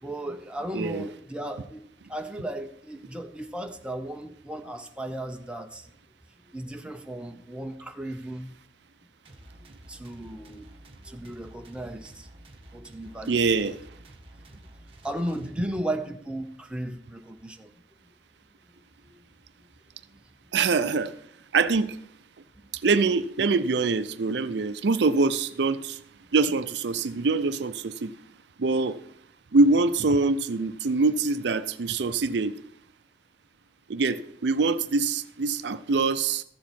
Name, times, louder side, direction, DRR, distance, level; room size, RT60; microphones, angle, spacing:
voice 1, 0.0-5.9 6.5-8.5 9.9-10.7 11.0-12.3 12.7-13.8 15.0-17.7 18.7-19.2 20.1-20.2, right 1 dB, 5° right, 0.7 m, -35 dB
voice 2, 0.7-1.1 13.3-13.8 20.5-21.1 21.5-22.0 22.7-26.0 26.3-28.1 28.6-29.0 29.5-32.5 33.9-36.4, right 3 dB, 65° right, 0.5 m, -24 dB
sound 1, 9.2-16.0, right 1 dB, 30° right, 1.4 m, -50 dB
14.0 x 7.4 x 4.3 m
head